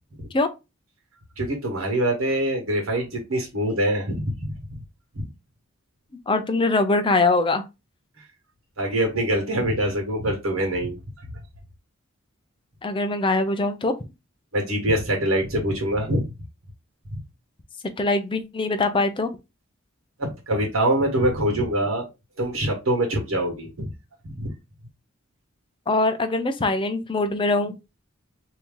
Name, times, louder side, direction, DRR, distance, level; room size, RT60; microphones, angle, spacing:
voice 1, 1.4-4.6 5.1-5.3 8.8-11.0 14.5-16.3 17.1-17.2 20.2-22.1 22.4-23.9 24.2-24.5, right 1 dB, 80° right, 1.5 m, -24 dB
voice 2, 6.3-7.6 12.8-13.9 18.0-19.3 25.9-27.8, left 2 dB, 25° left, 0.5 m, -22 dB
2.9 x 2.8 x 3.6 m
head